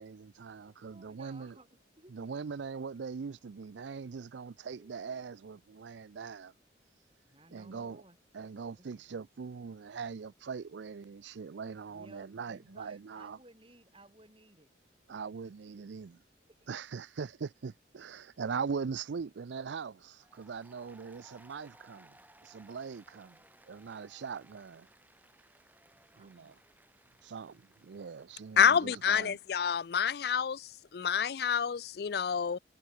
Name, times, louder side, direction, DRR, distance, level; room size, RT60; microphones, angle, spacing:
voice 1, 0.0-1.6 2.1-6.5 7.5-8.0 8.3-13.4 15.1-16.2 16.7-22.2 22.4-24.9 26.2-26.5 27.2-29.4, right 5 dB, 75° right, 0.4 m, -41 dB
voice 2, 0.6-1.7 2.0-2.1 4.8-5.2 7.2-8.2 8.7-8.9 9.1-9.3 11.9-14.7 15.4-15.8 25.9-26.5 28.7-29.3, right 2 dB, 30° right, 4.6 m, -59 dB
Applause, 20.1-28.9, right 1 dB, 10° right, 5.1 m, -62 dB
voice 3, 28.6-32.6, left 7 dB, 55° left, 0.4 m, -28 dB
head